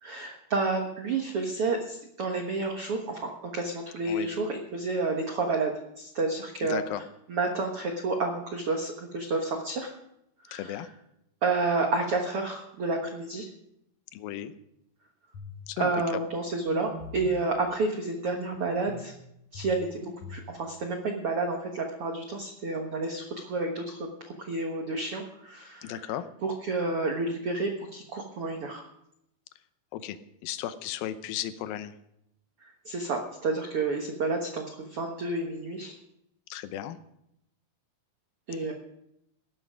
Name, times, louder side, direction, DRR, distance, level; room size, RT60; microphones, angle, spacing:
voice 1, 0.0-7.0 7.3-9.9 10.5-10.9 11.4-13.5 15.8-19.1 19.5-28.8 32.6-36.0 38.5-38.7, right 3 dB, 60° right, 2 dB, 1.5 m, -30 dB
voice 2, 6.6-7.0 10.5-10.9 14.1-14.5 15.7-15.9 25.8-26.3 29.9-30.2 30.4-31.9 36.5-37.0, left 12 dB, 75° left, 11 dB, 2.4 m, -35 dB
sound 1, 15.3-15.6 16.0-16.2 16.7-17.4 18.3-19.1 19.5-20.5, left 3 dB, 50° left, 3.9 m, -42 dB
17.5 x 11.5 x 5.1 m, 0.79 s
omnidirectional pair, 4.7 m